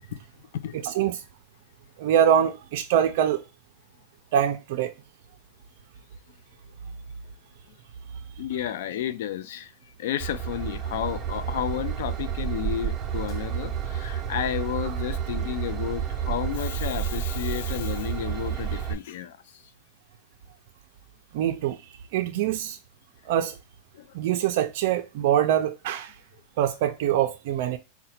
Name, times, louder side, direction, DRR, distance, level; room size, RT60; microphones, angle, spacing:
voice 1, 0.7-1.2 2.0-3.4 4.3-4.9 21.3-21.8 22.1-22.8 23.3-23.5 24.1-26.1 26.6-27.8, right 10 dB, 65° right, 0.4 m, -24 dB
voice 2, 8.4-9.7 10.0-19.4 23.9-24.1, left 11 dB, 75° left, 0.4 m, -32 dB
Train / Engine, 10.2-18.9, right 9 dB, 20° right, 0.6 m, -30 dB
3.8 x 2.1 x 4.2 m
supercardioid pair, 140°, 0 cm